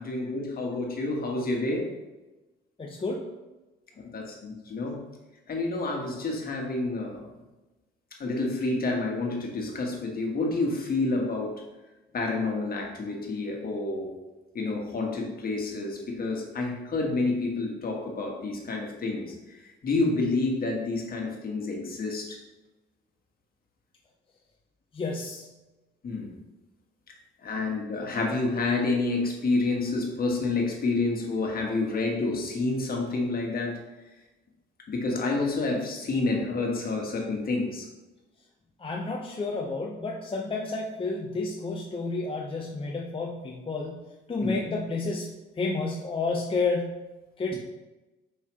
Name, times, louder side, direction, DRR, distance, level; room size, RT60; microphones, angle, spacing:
voice 1, 0.0-1.8 4.0-5.0 5.5-7.3 8.2-11.5 12.1-14.1 14.5-22.4 26.0-26.3 27.4-33.8 34.9-37.9 44.4-44.6, left 3 dB, 50° left, 0 dB, 1.5 m, -29 dB
voice 2, 2.8-3.3 24.9-25.5 38.8-44.0 44.3-47.0 47.4-47.5, left 3 dB, 25° left, -1 dB, 0.7 m, -30 dB
5.6 x 5.5 x 3.2 m, 1.1 s
cardioid pair, 90°, 20 cm